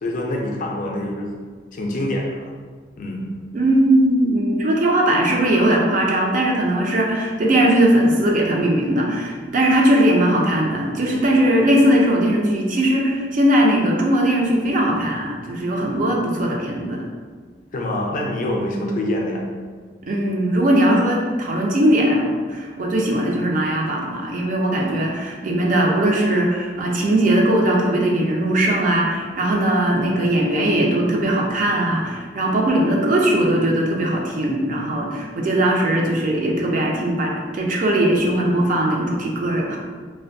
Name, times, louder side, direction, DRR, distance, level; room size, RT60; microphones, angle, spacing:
voice 1, 0.0-1.3 1.7-2.5 3.0-3.3 17.7-19.5, left 1 dB, 45° left, 0 dB, 0.4 m, -25 dB
voice 2, 3.5-17.0 20.1-39.8, right 1 dB, 45° right, -1 dB, 0.4 m, -19 dB
2.4 x 2.1 x 2.6 m, 1.5 s
head